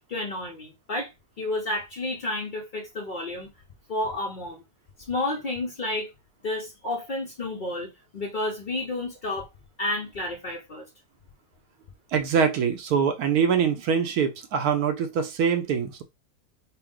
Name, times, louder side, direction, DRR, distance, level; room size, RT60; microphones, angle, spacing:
voice 1, 0.1-1.1 1.4-3.5 3.9-4.6 5.1-6.1 6.4-9.5 9.8-10.9, left 2 dB, 75° left, 0.4 m, -31 dB
voice 2, 12.1-16.0, right 7 dB, 70° right, 1.0 m, -24 dB
4.5 x 2.1 x 3.7 m
omnidirectional pair, 1.9 m